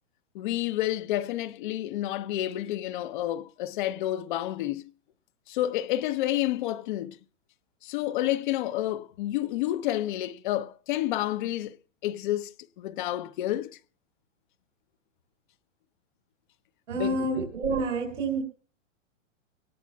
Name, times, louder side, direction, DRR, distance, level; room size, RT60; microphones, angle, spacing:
voice 1, 0.3-4.9 5.5-7.2 7.8-11.8 12.0-13.8 16.9-17.3, left 14 dB, 40° left, 0.8 m, -30 dB
voice 2, 16.9-18.4, right 2 dB, 75° right, 4.4 m, -28 dB
24.5 x 18.0 x 2.3 m
hypercardioid pair, 140°, 38 cm